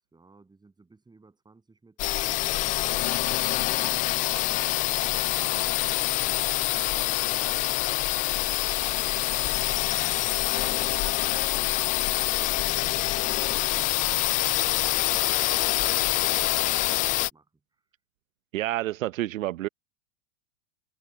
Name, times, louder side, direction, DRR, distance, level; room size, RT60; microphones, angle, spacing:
voice 1, 0.1-4.1 4.5-6.3 6.9-7.8 8.4-12.1 12.4-14.8 15.2-17.8, right 3 dB, 10° right, 8.0 m, -57 dB
sound 1, 2.0-17.3, left 17 dB, 20° left, 0.3 m, -26 dB
voice 2, 18.5-19.7, right 15 dB, 75° right, 0.8 m, -29 dB
hypercardioid pair, 115°, 40 cm